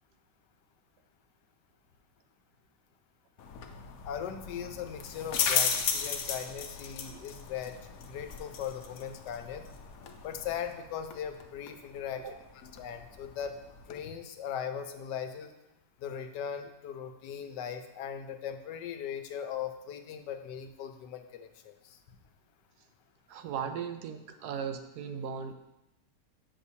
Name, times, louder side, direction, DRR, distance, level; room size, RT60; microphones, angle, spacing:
sound 1, 3.4-14.0, left 6 dB, 65° left, 1.0 m, -36 dB
voice 1, 4.0-7.8 8.0-9.7 10.2-12.2 12.8-13.5 13.9-15.5 16.0-21.7, left 8 dB, 80° left, 7 dB, 1.3 m, -39 dB
voice 2, 23.3-25.5, right 7 dB, 75° right, 8 dB, 1.1 m, -37 dB
8.1 x 6.0 x 2.8 m, 0.93 s
omnidirectional pair, 1.8 m